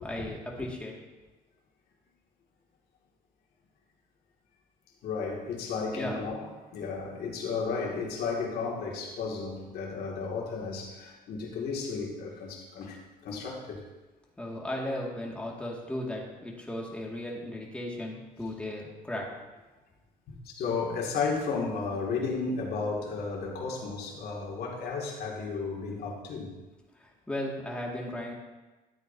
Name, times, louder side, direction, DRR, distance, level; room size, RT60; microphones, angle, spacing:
voice 1, 0.0-1.0 5.9-6.5 14.4-19.3 27.0-28.3, left 1 dB, 5° left, -2 dB, 2.2 m, -36 dB
voice 2, 5.0-13.8 20.4-26.6, left 4 dB, 65° left, -2 dB, 2.5 m, -33 dB
13.0 x 8.7 x 2.8 m, 1.2 s
cardioid pair, 110°, 17 cm